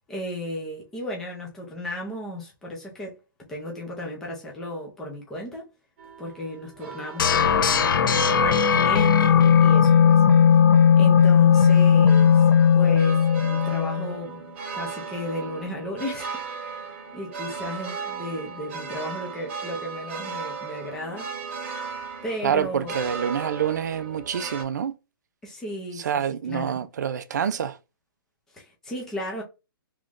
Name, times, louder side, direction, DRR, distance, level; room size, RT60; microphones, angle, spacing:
voice 1, 0.1-3.2 3.5-5.7 6.2-10.2 10.5-10.6 11.0-12.4 12.7-21.3 22.2-22.9 25.4-26.2 26.5-26.8 28.5-29.4, left 1 dB, 5° left, 0.5 m, -35 dB
sound 1, 6.0-24.6, right 5 dB, 35° right, 0.8 m, -37 dB
sound 2, 7.2-14.1, left 7 dB, 70° left, 0.6 m, -17 dB
voice 2, 22.4-25.0 26.0-27.8, right 8 dB, 50° right, 0.4 m, -27 dB
3.1 x 2.5 x 3.5 m
hypercardioid pair, 170°, 12 cm